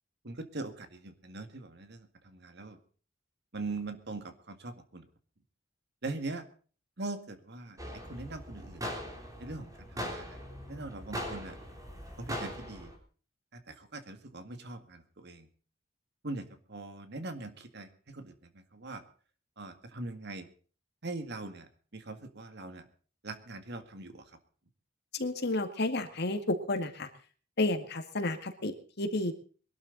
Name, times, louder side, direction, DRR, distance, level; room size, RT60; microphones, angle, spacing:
voice 1, 0.2-2.8 3.5-5.1 6.0-6.5 7.0-9.0 9.4-10.4 10.7-11.6 12.2-12.9 13.5-15.5 16.2-19.0 19.6-20.5 21.0-22.8 23.2-24.4, right 2 dB, 60° right, 9 dB, 2.0 m, -42 dB
sound 1, 7.8-13.0, equal, 20° right, 3.5 m, -40 dB
voice 2, 25.1-27.1 27.6-29.3, left 2 dB, 55° left, 7 dB, 2.0 m, -31 dB
22.0 x 12.5 x 4.0 m, 0.41 s
head